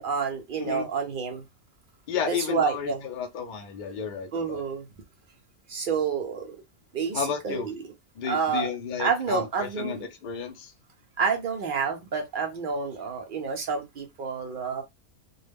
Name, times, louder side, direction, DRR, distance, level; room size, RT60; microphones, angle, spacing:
voice 1, 0.0-1.4 2.3-3.0 4.3-4.9 5.7-6.6 6.9-7.8 8.2-8.7 9.0-10.0 11.2-14.8, right 5 dB, 75° right, 0.4 m, -29 dB
voice 2, 2.1-4.6 7.1-7.7 8.2-10.7, left 7 dB, 80° left, 0.4 m, -32 dB
2.2 x 2.1 x 3.3 m
omnidirectional pair, 1.4 m